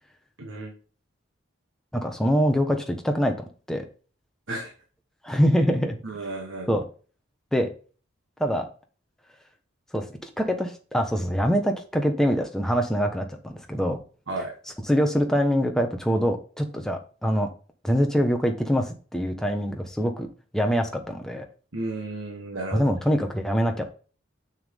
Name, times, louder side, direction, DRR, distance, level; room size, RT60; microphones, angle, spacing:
voice 1, 0.4-0.7 4.5-4.7 6.0-6.7 14.3-14.5 21.7-22.9, right 2 dB, 70° right, 2 dB, 1.4 m, -33 dB
voice 2, 1.9-3.8 5.2-6.0 6.7-6.8 7.5-7.7 8.4-8.7 9.9-14.0 14.8-17.5 17.8-20.3 20.5-21.5 22.7-23.9, equal, ahead, 3 dB, 1.2 m, -24 dB
7.4 x 6.8 x 3.6 m, 0.38 s
head